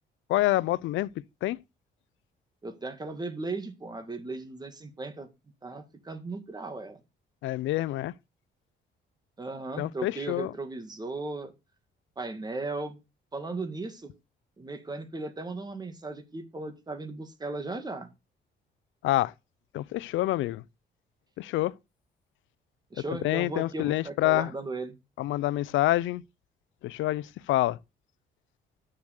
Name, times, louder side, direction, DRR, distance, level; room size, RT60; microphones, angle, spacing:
voice 1, 0.3-1.1 1.4-1.6 7.4-8.1 9.8-10.5 19.0-19.3 19.7-20.6 21.4-21.8 23.2-24.5 25.2-26.2 26.8-27.8, left 16 dB, 85° left, 0.6 m, -27 dB
voice 2, 2.6-5.3 5.6-7.0 9.4-11.5 12.2-13.0 13.3-14.1 14.6-18.1 22.9-25.0, right 3 dB, 20° right, 2.0 m, -36 dB
8.1 x 7.0 x 6.4 m
cardioid pair, 125°, 20 cm